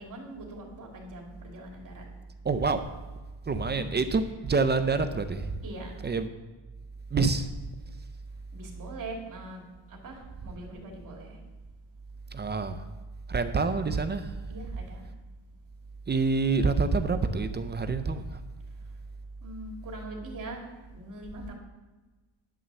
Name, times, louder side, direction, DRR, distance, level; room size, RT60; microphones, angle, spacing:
voice 1, 0.0-2.1 3.5-3.8 5.6-5.9 8.5-11.4 14.5-15.1 19.4-20.6 20.9-21.5, right 2 dB, 40° right, 0 dB, 2.8 m, -42 dB
voice 2, 2.4-2.9 3.5-5.5 6.0-6.3 7.1-7.5 12.3-12.8 13.3-14.4 16.1-18.4, right 4 dB, 25° right, 9 dB, 0.5 m, -27 dB
11.0 x 6.3 x 7.0 m, 1.2 s
cardioid pair, 160°, 48 cm